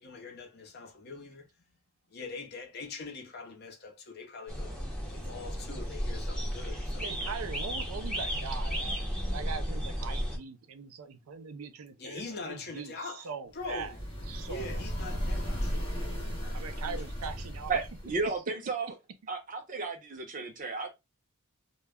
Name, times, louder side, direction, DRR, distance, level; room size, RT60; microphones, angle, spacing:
voice 1, 0.0-1.8 2.1-4.8 5.1-7.2 12.0-14.0 14.5-16.9 17.3-17.4, left 3 dB, 50° left, 0.7 m, -43 dB
sound 1, 4.5-10.4, equal, 5° left, 0.7 m, -34 dB
voice 2, 7.0-13.9 14.3-14.7 16.4-17.7, right 5 dB, 85° right, 0.4 m, -41 dB
sound 2, 13.6-18.3, equal, 25° left, 1.0 m, -35 dB
voice 3, 17.7-18.9 19.3-20.9, right 4 dB, 35° right, 0.6 m, -33 dB
2.2 x 2.1 x 3.3 m
head